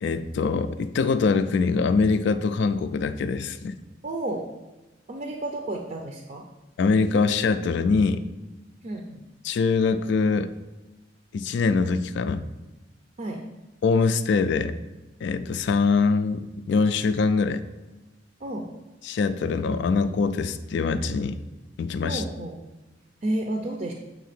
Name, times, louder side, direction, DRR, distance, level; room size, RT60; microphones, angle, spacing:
voice 1, 0.0-3.7 6.8-8.2 9.4-10.5 11.3-12.4 13.8-14.7 15.2-17.6 19.0-21.4 21.8-22.2, left 4 dB, 65° left, 11 dB, 0.3 m, -23 dB
voice 2, 4.0-4.5 5.1-6.5 8.8-9.2 13.2-13.5 18.4-18.7 22.0-22.6 23.2-23.9, right 1 dB, 40° right, 2 dB, 0.5 m, -31 dB
7.4 x 2.8 x 5.9 m, 1.1 s
head